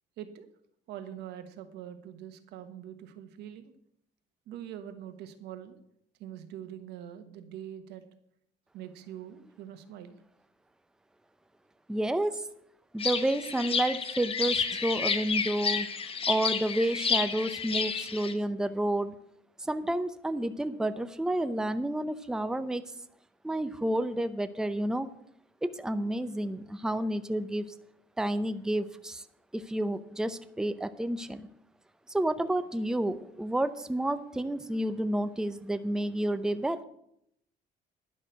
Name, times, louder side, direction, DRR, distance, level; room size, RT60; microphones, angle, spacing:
voice 1, 0.2-0.5 0.9-3.7 4.5-5.8 6.2-8.0 8.7-10.1, right 10 dB, 85° right, 9 dB, 1.3 m, -43 dB
voice 2, 11.9-12.4 12.9-15.9 16.3-19.1 19.6-22.8 23.4-25.1 25.6-27.6 28.2-29.2 29.5-31.5 32.1-36.8, right 1 dB, 5° right, 11 dB, 0.6 m, -30 dB
sound 1, 13.0-18.3, left 5 dB, 35° left, 1.1 m, -30 dB
11.0 x 6.4 x 7.8 m, 0.73 s
cardioid pair, 110°, 17 cm